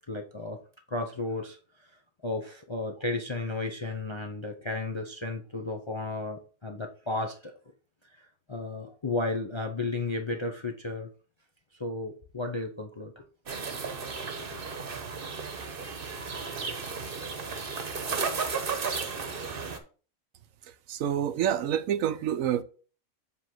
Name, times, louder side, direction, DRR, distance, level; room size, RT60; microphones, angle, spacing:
voice 1, 0.1-0.6 0.9-1.9 2.2-7.5 8.2-11.1 11.7-13.3 14.2-14.6, left 2 dB, 30° left, 0.5 m, -34 dB
sound 1, 13.5-19.8, right 5 dB, 45° right, 1.1 m, -34 dB
voice 2, 20.9-22.6, right 10 dB, 75° right, 1.0 m, -27 dB
7.6 x 3.4 x 5.9 m
omnidirectional pair, 1.5 m